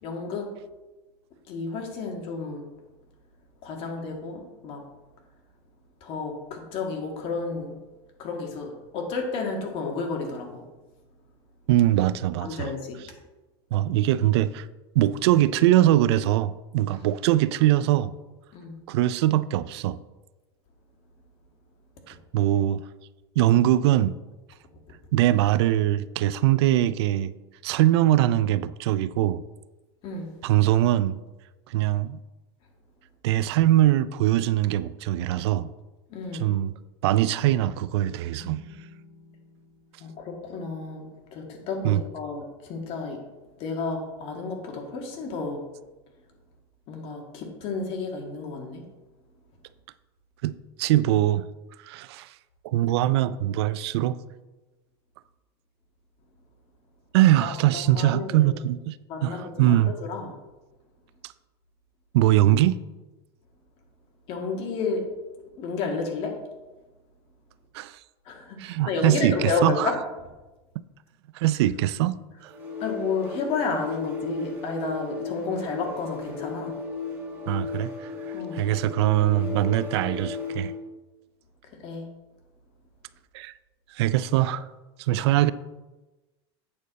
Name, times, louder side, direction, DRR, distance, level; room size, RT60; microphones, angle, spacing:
voice 1, 0.0-0.5 1.5-2.6 3.6-4.8 6.0-7.8 8.2-10.6 12.4-13.0 18.5-18.7 30.0-30.3 36.1-36.5 40.0-41.1 41.3-43.2 43.6-45.7 46.9-48.8 57.4-58.5 59.1-60.3 64.3-65.1 65.6-66.4 68.2-70.0 72.8-76.7 78.3-78.6 81.6-82.0, left 4 dB, 40° left, 2 dB, 1.8 m, -31 dB
voice 2, 11.7-12.7 13.7-14.7 15.0-18.1 18.9-20.0 22.1-22.8 23.4-24.2 25.1-27.3 27.6-29.4 30.4-31.2 31.7-32.2 33.2-35.7 36.3-36.7 37.0-38.6 41.8-42.0 50.4-51.4 51.8-52.3 52.6-54.2 57.1-59.0 59.2-59.9 62.1-62.8 67.7-68.0 68.6-69.9 71.3-72.2 72.4-72.5 77.5-80.7 83.3-83.5 83.9-84.7 85.0-85.5, right 13 dB, 75° right, 16 dB, 0.4 m, -22 dB
sound 1, 38.4-41.9, left 2 dB, 55° left, 1.7 m, -52 dB
sound 2, 72.4-80.8, left 4 dB, 15° right, 3.1 m, -35 dB
8.7 x 6.4 x 4.1 m, 1.1 s
supercardioid pair, 145°, 14 cm